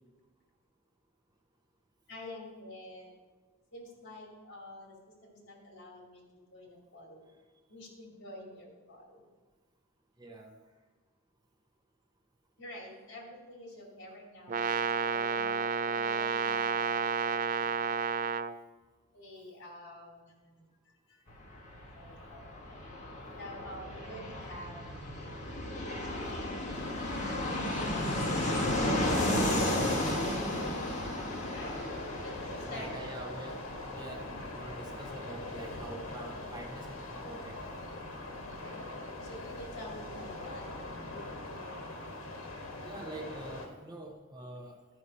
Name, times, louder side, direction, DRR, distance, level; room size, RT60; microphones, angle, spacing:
voice 1, 2.1-3.1 3.7-5.0 5.2-6.2 6.5-7.2 7.7-9.2 12.6-18.1 19.1-21.2 22.0-22.8 23.4-24.9 25.2-25.5 25.9-26.8 27.6-28.1 31.5-31.7 32.2-32.9 34.2-34.4 38.4-40.8, left 1 dB, 60° left, -1 dB, 2.6 m, -48 dB
voice 2, 10.2-10.6 32.7-33.6 33.9-37.6 42.8-44.8, right 1 dB, 20° right, 3 dB, 0.8 m, -45 dB
Brass instrument, 14.5-18.6, right 5 dB, 40° right, 0.3 m, -31 dB
Fixed-wing aircraft airplane, 21.3-39.7 39.9-40.0 40.2-40.9, left 1 dB, 35° left, 1.5 m, -34 dB
sound 1, 26.7-43.7, left 2 dB, 75° left, 1.4 m, -43 dB
12.5 x 4.8 x 5.4 m, 1.3 s
head